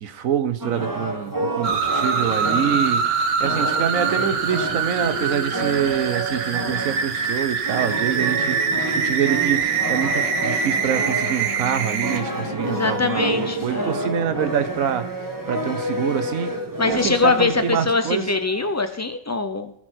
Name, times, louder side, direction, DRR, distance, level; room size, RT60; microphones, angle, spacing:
voice 1, 0.0-3.0 3.4-16.5 16.9-18.3, right 8 dB, 90° right, 11 dB, 1.3 m, -26 dB
sound 1, 0.6-11.7 12.0-18.8, right 1 dB, 15° right, 1.2 m, -30 dB
sound 2, 1.6-12.2, right 5 dB, 70° right, 1.2 m, -24 dB
sound 3, 9.5-14.8, left 5 dB, 80° left, 1.4 m, -37 dB
voice 2, 12.7-14.0 16.8-19.7, left 3 dB, 25° left, 9 dB, 0.3 m, -23 dB
17.0 x 6.0 x 4.5 m, 0.71 s
omnidirectional pair, 1.4 m